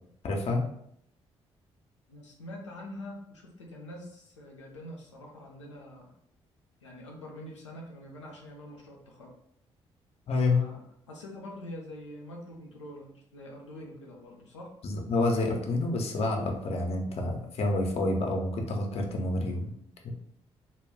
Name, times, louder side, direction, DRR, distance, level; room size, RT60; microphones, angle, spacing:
voice 1, 0.2-0.7 10.3-10.6 14.8-19.7, left 2 dB, 45° left, 2 dB, 0.6 m, -28 dB
voice 2, 2.1-6.1 6.8-9.4 10.4-10.8 11.1-14.7, left 1 dB, 85° left, -1 dB, 0.4 m, -45 dB
2.2 x 2.0 x 3.6 m, 0.70 s
figure-of-eight pair, 40°, 15 cm